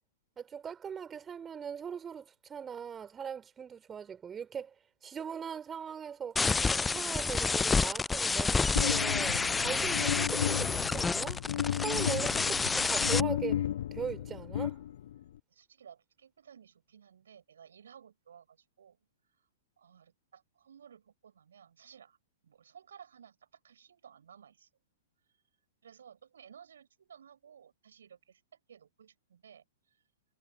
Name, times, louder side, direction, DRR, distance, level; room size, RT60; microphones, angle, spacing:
voice 1, 0.4-4.7 5.0-6.4 6.7-11.4 11.7-13.6 13.9-14.8, right 7 dB, 15° right, 4.3 m, -40 dB
sound 1, 6.4-13.2, left 4 dB, 10° left, 0.3 m, -29 dB
sound 2, 8.8-15.4, left 11 dB, 55° left, 0.7 m, -34 dB
voice 2, 15.5-19.0 19.8-22.2 22.4-24.7 25.8-29.6, right 8 dB, 60° right, 5.8 m, -56 dB
figure-of-eight pair, 105°, 0 cm